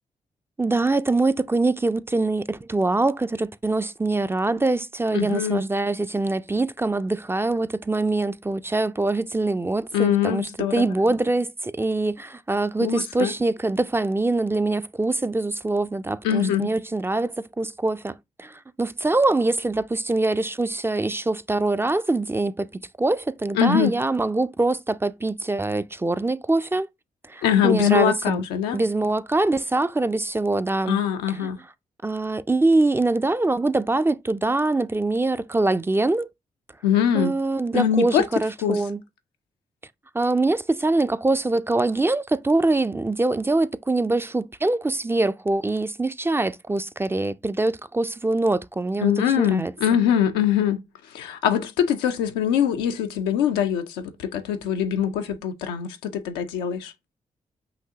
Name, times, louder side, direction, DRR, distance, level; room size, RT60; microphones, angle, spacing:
voice 1, 0.6-22.7 23.0-26.9 27.3-28.4 28.7-31.0 31.4-31.5 32.0-36.3 37.1-39.0 40.1-49.7, right 2 dB, 15° right, 0.3 m, -24 dB
voice 2, 5.1-5.6 9.9-10.9 12.8-13.3 16.2-16.7 23.5-23.9 27.4-28.8 30.9-31.6 36.8-37.3 37.7-38.2 38.6-38.8 49.0-50.8 51.1-56.9, left 9 dB, 90° left, 0.4 m, -23 dB
5.8 x 2.7 x 2.8 m
hypercardioid pair, 40°, 16 cm